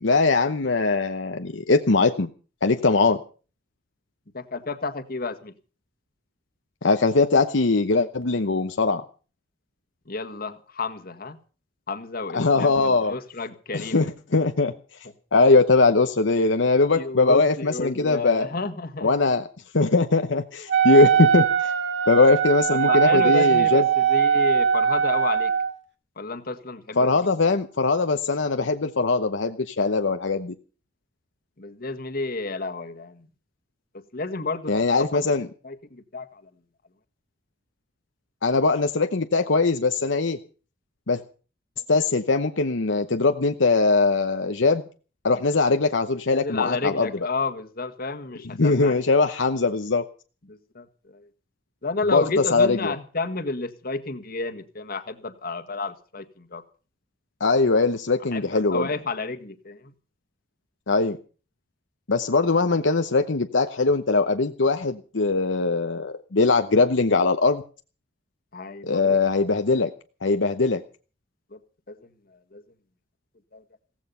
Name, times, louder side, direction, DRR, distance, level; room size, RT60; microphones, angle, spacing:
voice 1, 0.0-2.3 2.6-3.2 6.8-9.0 12.3-13.1 13.7-14.7 15.3-18.5 19.0-19.5 19.7-21.7 22.1-23.8 27.0-30.5 34.7-35.5 38.4-40.4 41.1-41.2 41.9-44.8 45.2-47.1 48.6-50.0 52.0-52.9 57.4-58.9 60.9-61.2 62.1-67.6 68.9-69.9 70.2-70.8, left 3 dB, 80° left, 7 dB, 0.9 m, -21 dB
voice 2, 4.3-5.5 10.1-11.4 11.9-14.1 16.9-19.1 22.7-25.5 26.2-27.3 31.6-33.3 34.1-35.1 35.6-36.4 46.3-49.0 50.5-51.3 51.8-56.6 58.3-59.9 68.5-69.2 71.5-71.6 71.9-72.1 72.5-72.6 73.5-73.6, left 3 dB, 55° left, 10 dB, 1.7 m, -31 dB
Wind instrument woodwind instrument, 20.7-25.7, right 7 dB, 70° right, 2.3 m, -21 dB
16.5 x 15.0 x 5.6 m, 0.38 s
head